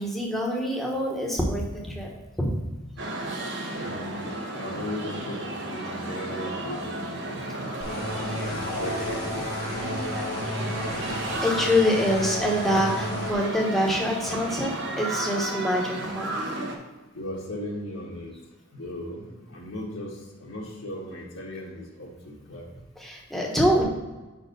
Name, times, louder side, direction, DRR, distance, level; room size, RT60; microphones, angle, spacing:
voice 1, 0.0-2.1 2.4-2.5 11.1-16.3 23.0-23.8, equal, ahead, -2 dB, 1.0 m, -25 dB
sound 1, 3.0-16.7, right 1 dB, 55° right, 1.0 m, -33 dB
voice 2, 3.7-7.6 8.1-9.5 17.1-18.3 18.7-22.7, left 1 dB, 70° left, -3 dB, 1.4 m, -37 dB
sound 2, 7.8-13.3, left 1 dB, 45° left, 1.1 m, -33 dB
5.7 x 4.3 x 5.2 m, 1.2 s
head